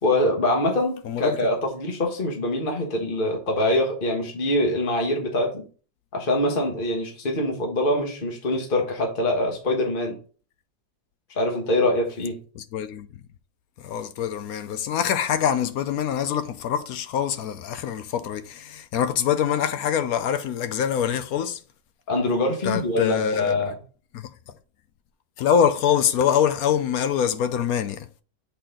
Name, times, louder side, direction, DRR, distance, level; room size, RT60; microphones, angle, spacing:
voice 1, 0.0-5.6 6.1-10.2 11.4-12.4 22.1-23.7, left 1 dB, 30° left, 1.5 m, -24 dB
voice 2, 1.1-1.4 12.6-13.1 13.8-21.6 22.6-23.6 24.1-24.3 25.4-28.1, left 8 dB, 70° left, 0.9 m, -24 dB
8.0 x 4.2 x 3.7 m
omnidirectional pair, 1.9 m